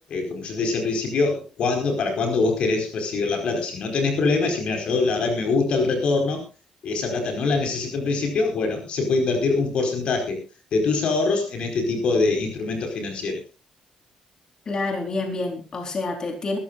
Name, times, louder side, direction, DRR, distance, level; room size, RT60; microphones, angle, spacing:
voice 1, 0.1-6.4 6.8-10.4 10.7-13.4, left 3 dB, 60° left, 4 dB, 4.8 m, -24 dB
voice 2, 14.7-16.6, left 3 dB, 35° left, 3 dB, 4.2 m, -28 dB
21.5 x 14.5 x 2.5 m, 0.31 s
cardioid pair, 115°, 2 cm